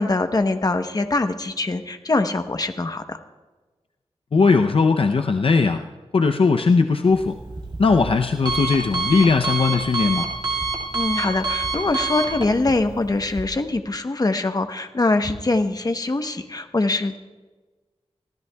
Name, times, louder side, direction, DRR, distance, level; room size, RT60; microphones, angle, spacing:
voice 1, 0.0-3.2 10.9-17.2, left 2 dB, 35° left, 7 dB, 0.9 m, -23 dB
voice 2, 4.3-5.8 6.1-7.4 7.8-10.3, left 4 dB, 55° left, 5 dB, 0.6 m, -18 dB
Alarm, 7.0-13.4, right 3 dB, 45° right, 2.0 m, -28 dB
24.5 x 16.0 x 2.3 m, 1.2 s
wide cardioid pair, 105°, 11 cm